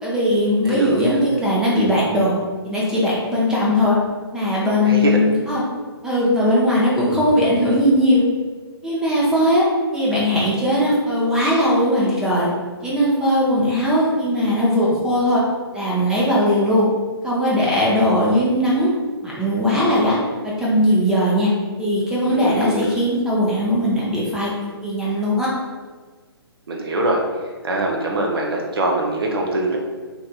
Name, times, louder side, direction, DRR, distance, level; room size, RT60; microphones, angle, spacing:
voice 1, 0.0-2.3 2.6-4.0 4.3-5.6 6.0-8.2 8.8-9.7 9.9-12.5 12.8-15.4 15.7-16.8 17.2-18.9 19.2-20.2 20.4-21.5 21.8-24.5 24.8-25.5, equal, 5° right, -6 dB, 0.4 m, -19 dB
voice 2, 0.7-1.2 4.9-5.2 22.3-22.9 26.7-27.2 27.6-29.8, right 2 dB, 65° right, 0 dB, 0.6 m, -23 dB
3.2 x 2.9 x 2.3 m, 1.4 s
figure-of-eight pair, 135°, 14 cm